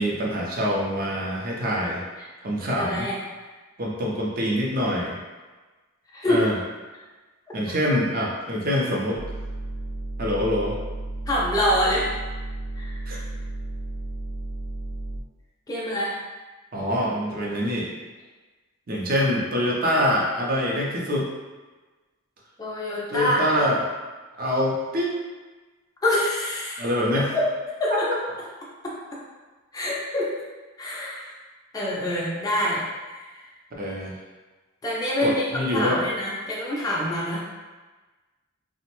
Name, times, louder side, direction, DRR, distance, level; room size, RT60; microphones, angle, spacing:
voice 1, 0.0-2.0 2.4-3.1 3.8-5.2 6.3-6.6 7.5-9.2 10.2-10.8 13.1-13.2 16.7-17.9 18.9-21.3 23.1-23.9 24.3-25.2 26.8-27.3 28.1-28.2 33.8-34.1 35.2-36.0, equal, 45° right, -3 dB, 0.6 m, -25 dB
voice 2, 2.6-3.2 6.1-6.4 11.3-12.1 12.7-13.0 15.7-16.2 22.6-23.6 26.0-26.9 27.1-27.5 27.8-28.1 28.8-28.9 29.7-30.3 30.8-31.3 31.7-32.8 33.1-33.4 34.8-37.4, left 1 dB, 15° left, -6 dB, 0.4 m, -26 dB
sound 1, 9.1-15.2, right 2 dB, 75° left, 0.4 m, -33 dB
2.9 x 2.1 x 2.9 m, 1.3 s
head